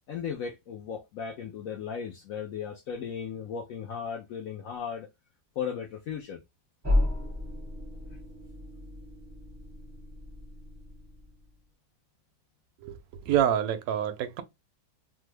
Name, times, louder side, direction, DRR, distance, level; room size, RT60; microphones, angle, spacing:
voice 1, 0.1-5.1 5.6-6.4, left 7 dB, 75° left, 0.8 m, -36 dB
sound 1, 6.8-11.5, left 1 dB, 20° right, 0.5 m, -33 dB
voice 2, 12.8-14.4, right 10 dB, 70° right, 0.8 m, -27 dB
3.3 x 2.0 x 3.1 m
omnidirectional pair, 1.9 m